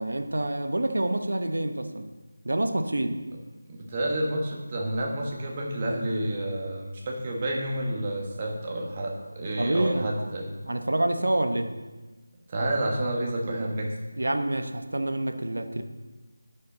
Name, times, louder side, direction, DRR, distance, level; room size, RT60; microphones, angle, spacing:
voice 1, 0.0-2.0 2.4-3.2 9.6-10.1 10.6-11.7 14.2-15.8, right 1 dB, 65° right, 7 dB, 0.8 m, -27 dB
voice 2, 3.7-10.5 12.5-13.9, right 1 dB, 25° right, -1 dB, 1.2 m, -29 dB
11.0 x 5.5 x 3.9 m, 1.2 s
figure-of-eight pair, 165°, 0 cm